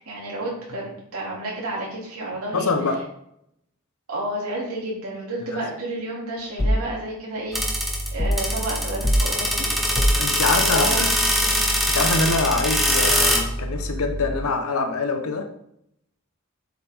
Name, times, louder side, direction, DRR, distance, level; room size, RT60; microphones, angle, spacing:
voice 1, 0.0-2.7 4.1-7.6 8.1-9.7 10.6-11.1 11.4-11.6, right 1 dB, 85° right, 3.0 m, -31 dB
voice 2, 2.5-3.1 5.5-5.6 10.1-11.3 11.9-15.5, left 3 dB, 90° left, 1.0 m, -24 dB
sound 1, 6.6-6.9 8.2-8.5 9.0-9.3 9.9-10.3, equal, 15° left, 0.4 m, -21 dB
sound 2, 7.5-14.4, equal, ahead, 1.0 m, -23 dB
7.5 x 5.4 x 3.7 m
head